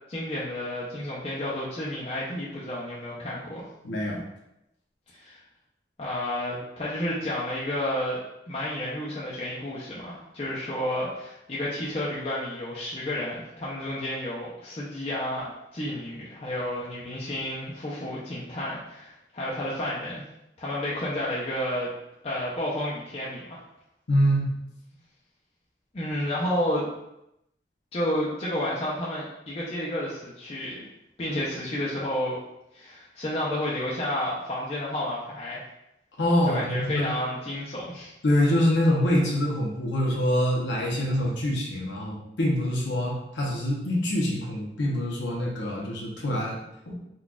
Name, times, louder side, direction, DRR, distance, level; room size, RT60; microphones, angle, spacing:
voice 1, 0.1-3.7 5.1-5.4 6.0-8.2 8.5-20.2 20.6-21.9 22.2-23.6 25.9-26.9 27.9-30.8 31.2-32.4 32.7-35.6 36.5-38.1, left 1 dB, 35° left, -6 dB, 0.5 m, -31 dB
voice 2, 3.8-4.2 24.1-24.5 36.2-37.1 38.2-46.6 46.9-47.0, equal, 90° left, -3 dB, 0.8 m, -25 dB
3.9 x 2.3 x 2.3 m, 0.85 s
head